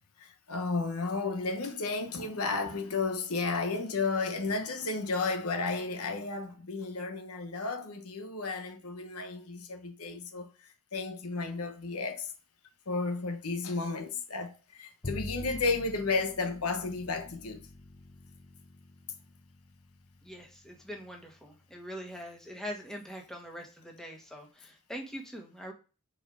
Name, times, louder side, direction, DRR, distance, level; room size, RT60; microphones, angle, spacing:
voice 1, 0.2-10.5 10.9-12.3 12.9-17.6, left 3 dB, 75° left, 1.2 m, -33 dB
Bowed string instrument, 15.0-21.5, left 2 dB, 30° left, 0.7 m, -46 dB
voice 2, 20.2-25.7, equal, ahead, 1.4 m, -43 dB
5.8 x 4.6 x 4.8 m
head